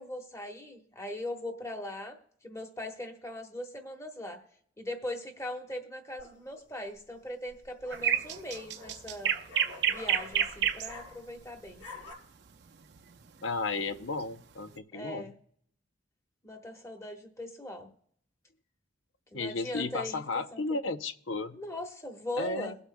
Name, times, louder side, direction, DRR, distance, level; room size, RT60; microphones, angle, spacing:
voice 1, 0.0-2.2 2.4-4.4 4.8-9.3 9.9-11.8 14.9-15.3 16.4-17.9 19.3-20.2 20.5-20.6 21.5-22.8, left 1 dB, 15° left, 3 dB, 1.2 m, -40 dB
sound 1, 6.2-6.6 7.5-11.4 11.7-12.1, left 2 dB, 70° left, 4.4 m, -48 dB
sound 2, 7.9-10.9 13.0-13.2, right 9 dB, 60° right, 0.6 m, -28 dB
voice 2, 13.4-15.3 19.3-21.6 22.4-22.7, left 3 dB, 90° left, 10 dB, 0.7 m, -34 dB
22.0 x 8.0 x 2.2 m, 0.67 s
head